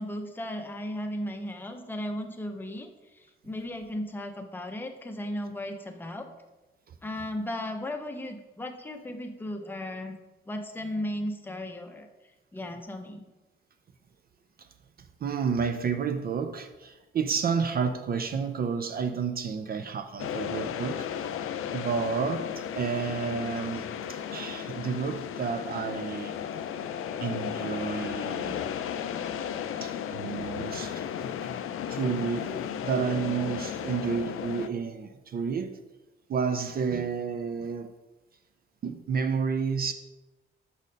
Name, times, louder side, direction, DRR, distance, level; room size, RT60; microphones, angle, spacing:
voice 1, 0.0-6.3 7.0-10.2 10.5-12.1 12.5-13.2, left 1 dB, 10° left, 5 dB, 0.5 m, -36 dB
voice 2, 15.2-23.8 24.1-26.4 27.2-28.8 29.8-31.5 31.9-35.8 36.3-37.9 38.8-39.9, right 6 dB, 45° right, 7 dB, 0.4 m, -31 dB
sound 1, 20.2-34.7, left 8 dB, 85° left, 0.4 m, -34 dB
6.2 x 4.2 x 5.2 m, 1.1 s
wide cardioid pair, 175°, 21 cm